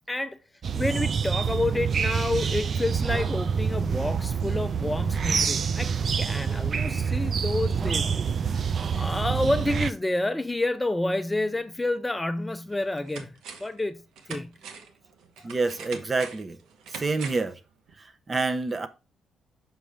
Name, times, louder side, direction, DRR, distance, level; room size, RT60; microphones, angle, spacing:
voice 1, 0.1-0.4 0.7-8.6 8.9-14.0 14.3-14.5, left 2 dB, 10° left, 0.4 m, -29 dB
sound 1, 0.6-9.9, right 6 dB, 50° right, 0.4 m, -27 dB
sound 2, 12.2-12.3 12.7-13.8 14.2-17.6 17.9-18.0, right 6 dB, 85° right, 1.0 m, -43 dB
voice 2, 15.4-16.6 16.9-17.6 18.0-18.9, right 3 dB, 30° right, 0.8 m, -28 dB
6.1 x 5.0 x 3.4 m
cardioid pair, 90°, 0 cm